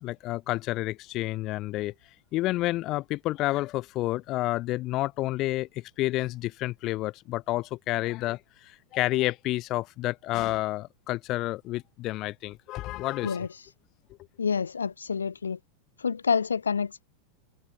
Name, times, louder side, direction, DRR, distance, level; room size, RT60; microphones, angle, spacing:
voice 1, 0.0-1.9 2.3-13.5, left 17 dB, 35° left, 0.7 m, -30 dB
voice 2, 14.4-15.6 16.0-17.1, left 6 dB, 75° left, 0.7 m, -28 dB
figure-of-eight pair, 90°, 0 cm